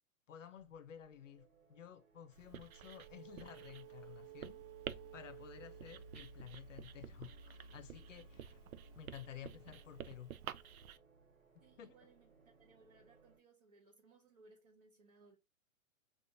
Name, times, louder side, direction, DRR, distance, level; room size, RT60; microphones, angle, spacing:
voice 1, 0.3-4.6 5.1-8.6 9.0-10.3 11.8-11.9, left 9 dB, 60° left, 0.7 m, -53 dB
sound 1, 0.6-13.4, right 6 dB, 60° right, 1.4 m, -58 dB
Writing, 2.3-11.0, right 9 dB, 80° right, 0.6 m, -51 dB
sound 2, 3.1-10.0, left 4 dB, 30° left, 0.5 m, -71 dB
voice 2, 11.6-12.3 12.6-15.4, right 3 dB, 30° right, 0.8 m, -65 dB
4.9 x 2.5 x 2.8 m
hypercardioid pair, 175°, 42 cm